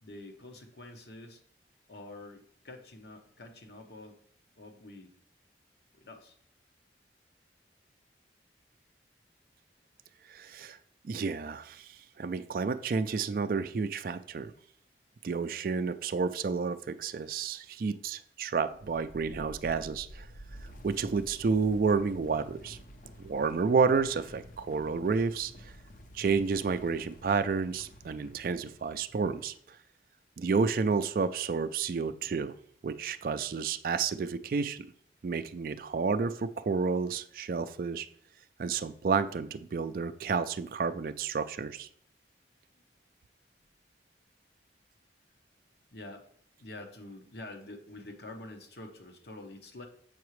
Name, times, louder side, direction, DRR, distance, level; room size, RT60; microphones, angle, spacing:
voice 1, 0.0-1.4 1.9-4.2 4.6-5.1 5.9-6.4 45.9-46.2 46.6-49.9, left 2 dB, 70° left, 5 dB, 0.9 m, -47 dB
voice 2, 10.3-10.8 11.0-14.5 15.2-20.3 20.8-22.8 23.2-25.7 26.1-29.8 30.4-32.5 32.8-34.9 35.2-38.1 38.6-41.9, right 5 dB, 50° right, 10 dB, 0.3 m, -30 dB
sound 1, 18.7-29.4, equal, 45° left, 0.6 m, -50 dB
7.1 x 5.8 x 3.1 m, 0.63 s
head